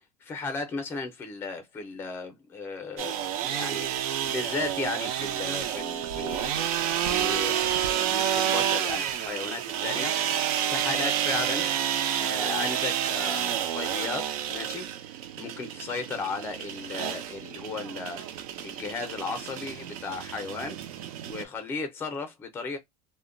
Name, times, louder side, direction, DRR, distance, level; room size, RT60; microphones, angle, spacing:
voice 1, 0.2-10.2 10.6-11.7 12.2-14.9 15.4-20.8 21.3-22.8, left 4 dB, 10° left, 0.5 m, -35 dB
sound 1, 3.0-21.4, right 10 dB, 70° right, 0.5 m, -29 dB
2.2 x 2.1 x 3.7 m
supercardioid pair, 180°, 19 cm